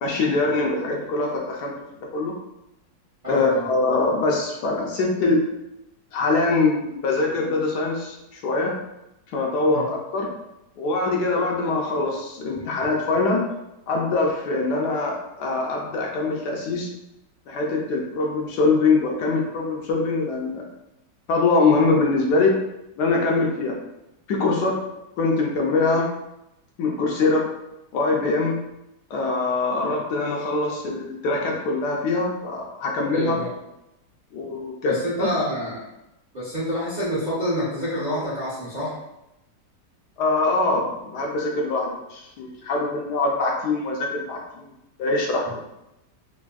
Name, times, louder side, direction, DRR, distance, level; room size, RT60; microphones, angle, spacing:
voice 1, 0.0-1.7 2.1-2.3 3.3-5.4 6.1-8.7 9.3-10.3 10.8-13.4 13.9-16.9 17.5-20.7 21.3-22.5 23.0-23.8 24.3-24.8 25.2-26.1 26.8-27.5 27.9-28.6 29.1-33.4 34.3-35.3 40.2-44.6 45.0-45.6, left 3 dB, 75° left, -1 dB, 1.1 m, -23 dB
voice 2, 3.2-3.7 9.6-9.8 33.1-33.5 34.8-35.8 36.3-39.0, equal, 40° right, -9 dB, 0.6 m, -27 dB
3.4 x 2.6 x 2.3 m, 0.89 s
omnidirectional pair, 1.9 m